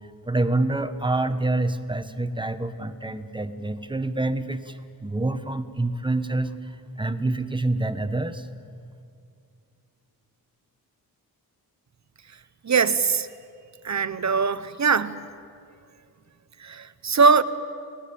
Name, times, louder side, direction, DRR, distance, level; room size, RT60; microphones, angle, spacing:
voice 1, 0.2-8.5, right 2 dB, 15° right, 9 dB, 1.2 m, -27 dB
voice 2, 12.6-13.3 13.8-15.2 16.6-17.4, right 5 dB, 45° right, 13 dB, 1.0 m, -21 dB
30.0 x 19.0 x 8.6 m, 2.4 s
wide cardioid pair, 135°, 37 cm